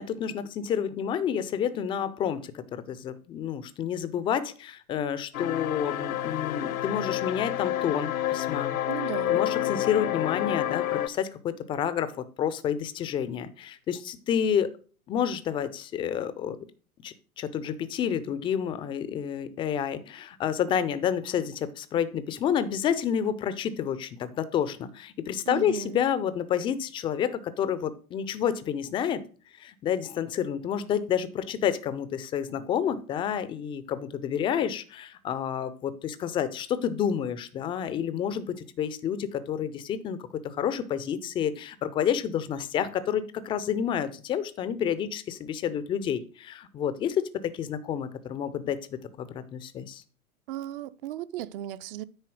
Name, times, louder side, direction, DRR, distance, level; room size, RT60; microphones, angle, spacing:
voice 1, 0.0-8.8 9.3-14.7 15.1-16.6 17.0-29.2 29.6-50.0, left 8 dB, 15° left, 0.4 m, -29 dB
sound 1, 5.3-11.1, left 12 dB, 70° left, 0.8 m, -29 dB
voice 2, 8.9-9.4 25.5-26.0 50.5-52.0, right 12 dB, 40° right, 0.5 m, -35 dB
9.5 x 4.2 x 6.2 m
figure-of-eight pair, 100°, 43 cm